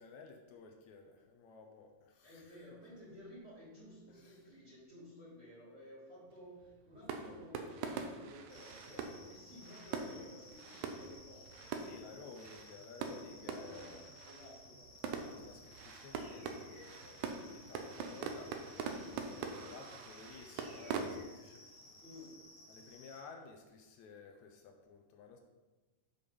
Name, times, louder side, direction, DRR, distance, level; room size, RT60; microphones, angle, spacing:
voice 1, 0.0-2.7 4.2-4.4 11.8-14.1 15.2-22.0 22.7-25.4, left 5 dB, 75° left, 4 dB, 2.0 m, -55 dB
voice 2, 2.2-12.5 13.3-14.0 14.2-14.9 22.0-22.4, equal, 25° right, -6 dB, 2.0 m, -54 dB
sound 1, 6.3-21.1, right 5 dB, 85° right, 2.1 m, -44 dB
sound 2, 8.5-23.2, left 1 dB, 55° left, 1.6 m, -58 dB
sound 3, 15.6-22.3, right 2 dB, 50° right, 2.1 m, -63 dB
6.7 x 5.2 x 5.4 m, 1.2 s
omnidirectional pair, 3.4 m